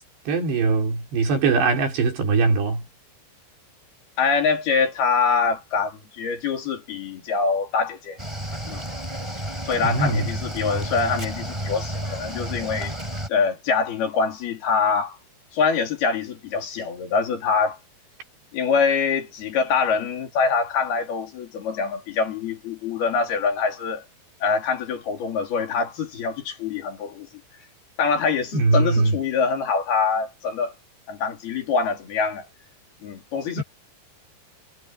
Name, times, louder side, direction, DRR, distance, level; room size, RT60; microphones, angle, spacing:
voice 1, 0.3-2.8 9.8-10.3 28.5-29.2 33.5-33.6, right 3 dB, 80° right, 7.0 m, -21 dB
voice 2, 4.2-8.2 8.7-8.8 9.6-12.9 13.3-15.2 15.5-17.8 18.5-24.0 24.4-27.3 28.0-30.7 31.1-32.4 33.0-33.6, left 5 dB, 65° left, 5.0 m, -24 dB
Cricket / Waves surf, 8.2-13.3, right 1 dB, 5° right, 5.3 m, -31 dB
omnidirectional pair, 4.9 m